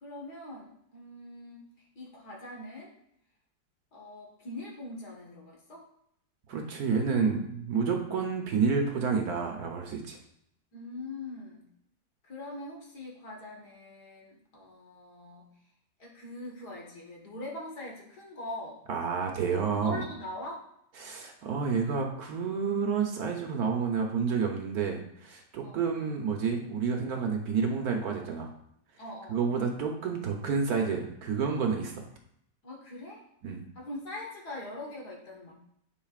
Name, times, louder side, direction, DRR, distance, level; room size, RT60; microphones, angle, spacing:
voice 1, 0.0-1.7 2.0-2.9 3.9-5.8 10.7-11.6 12.2-15.5 16.0-18.8 19.7-20.6 25.6-25.8 29.0-29.4 32.6-33.3 33.8-35.5, left 1 dB, 65° left, -2 dB, 2.1 m, -42 dB
voice 2, 6.5-10.2 18.9-20.0 21.0-28.5 29.3-32.0 33.4-33.6, right 5 dB, 60° right, 2 dB, 1.2 m, -29 dB
10.5 x 4.8 x 2.4 m, 0.74 s
omnidirectional pair, 1.9 m